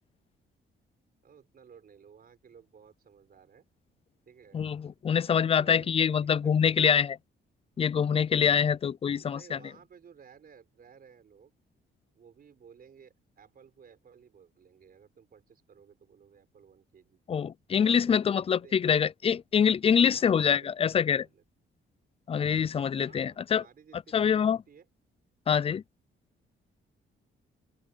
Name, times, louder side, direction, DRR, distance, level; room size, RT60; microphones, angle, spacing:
voice 1, 1.2-3.6 4.3-7.1 7.8-8.0 9.0-11.5 12.1-17.2 18.0-19.0 20.1-21.4 23.0-24.9, right 7 dB, 45° right, 4.6 m, -56 dB
voice 2, 4.5-7.2 7.8-9.6 17.3-21.3 22.3-23.6 24.1-24.6 25.5-25.8, left 7 dB, 30° left, 0.4 m, -25 dB
open air
cardioid pair, 150°, 21 cm